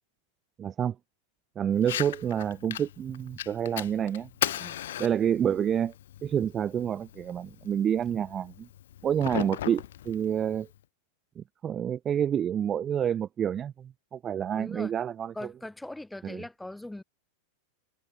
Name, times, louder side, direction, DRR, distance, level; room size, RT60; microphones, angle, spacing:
voice 1, 0.6-1.0 1.6-4.6 5.0-5.9 6.2-8.7 9.0-10.7 11.4-15.3 16.2-16.4, right 9 dB, 25° right, 0.4 m, -28 dB
Fire, 1.8-10.8, left 12 dB, 60° left, 1.0 m, -38 dB
voice 2, 14.6-14.9 15.3-17.0, left 1 dB, 5° left, 2.1 m, -40 dB
figure-of-eight pair, 90°, 0 cm